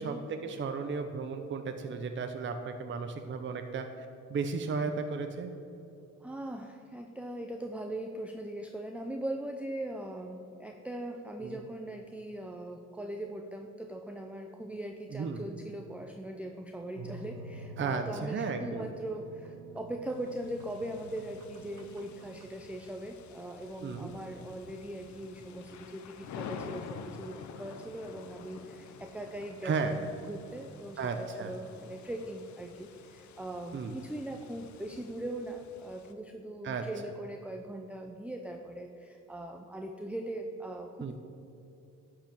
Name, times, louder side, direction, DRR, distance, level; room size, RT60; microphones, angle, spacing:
voice 1, 0.0-5.5 11.4-11.6 15.1-15.4 17.8-18.9 23.8-24.1 29.6-29.9 31.0-31.5 33.7-33.9 36.6-36.8 41.0-41.1, right 5 dB, 40° right, 6 dB, 0.8 m, -34 dB
voice 2, 6.2-41.1, right 1 dB, 5° right, 3 dB, 0.6 m, -40 dB
sound 1, 17.0-22.5, right 2 dB, 80° right, 0.7 m, -48 dB
sound 2, 20.1-36.1, left 6 dB, 70° left, 0.8 m, -49 dB
11.5 x 4.9 x 7.5 m, 2.9 s
cardioid pair, 90°, 30 cm